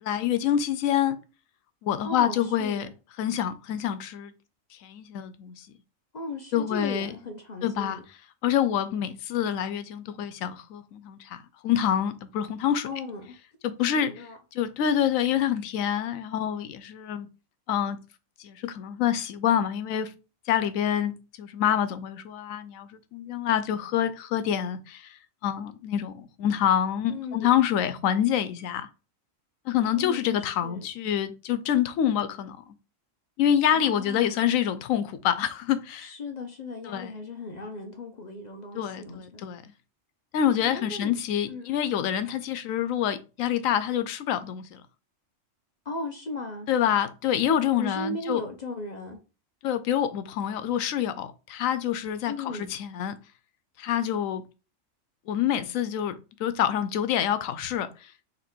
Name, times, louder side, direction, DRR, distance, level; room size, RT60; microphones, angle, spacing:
voice 1, 0.0-1.2 1.8-2.9 3.2-4.3 4.8-5.7 6.5-7.1 7.6-8.0 8.4-12.9 13.6-17.3 17.7-18.0 18.4-20.1 20.5-25.2 25.4-28.9 29.7-32.6 33.4-36.1 36.8-37.1 38.7-39.6 40.3-44.8 46.7-48.4 49.6-53.2 53.8-54.4 55.3-58.1, left 10 dB, 90° left, 1.0 m, -27 dB
voice 2, 2.0-2.9 6.1-8.0 12.8-13.3 14.0-14.4 27.1-27.5 30.0-30.8 33.7-34.4 36.0-39.4 40.6-41.1 41.5-41.7 45.8-46.7 47.8-49.2 52.3-52.7, left 2 dB, 50° left, 0.5 m, -37 dB
4.0 x 2.9 x 4.3 m
omnidirectional pair, 1.4 m